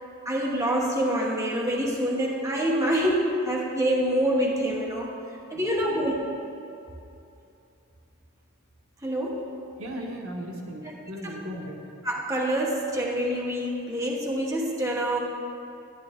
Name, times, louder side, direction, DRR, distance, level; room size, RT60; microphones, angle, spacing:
voice 1, 0.2-5.1 5.5-6.1 9.0-9.5 11.2-11.3 12.0-15.2, right 1 dB, 15° right, -2 dB, 1.1 m, -26 dB
voice 2, 5.5-6.0 9.8-11.8, equal, 75° right, 0 dB, 1.3 m, -37 dB
11.5 x 10.5 x 3.6 m, 2.8 s
head